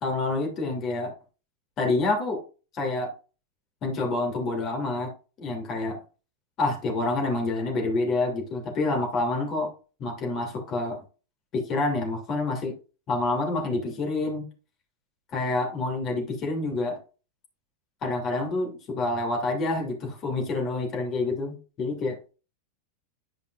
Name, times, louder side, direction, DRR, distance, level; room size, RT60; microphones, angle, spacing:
voice 1, 0.0-1.1 1.8-2.4 2.7-3.1 3.8-5.1 5.4-6.0 6.6-9.7 10.0-11.0 11.5-12.7 13.1-14.5 15.3-17.0 18.0-22.2, left 2 dB, 30° left, 1 dB, 2.7 m, -27 dB
11.0 x 5.2 x 2.5 m, 0.34 s
figure-of-eight pair, 90°, 0 cm